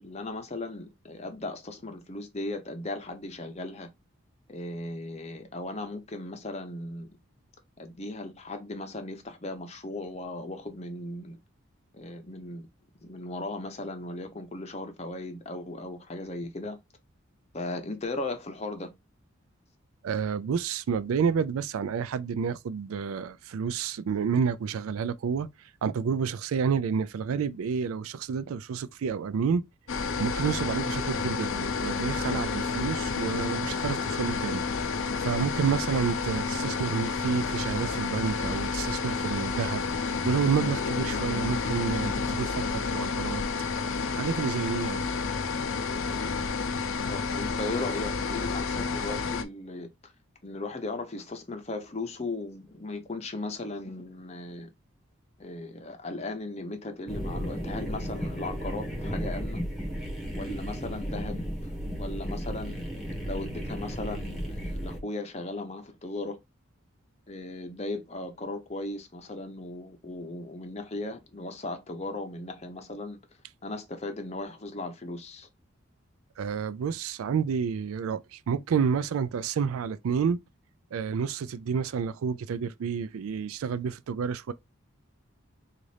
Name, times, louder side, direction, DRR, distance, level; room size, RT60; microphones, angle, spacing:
voice 1, 0.0-3.9 4.5-7.2 7.8-11.4 11.9-12.7 13.0-16.8 17.5-18.9 47.1-50.1 50.4-54.7 55.4-59.6 60.4-61.7 62.0-62.8 63.2-66.4 67.3-73.2 73.6-75.5, left 2 dB, 30° left, 0.7 m, -37 dB
voice 2, 20.0-25.5 25.8-29.6 30.2-34.6 35.2-43.4 44.1-45.1 76.4-80.4 80.9-84.5, right 6 dB, 85° right, 0.3 m, -29 dB
sound 1, 29.9-49.4, left 4 dB, 75° left, 0.5 m, -30 dB
sound 2, 57.1-65.0, equal, ahead, 1.2 m, -34 dB
4.0 x 2.5 x 3.2 m
head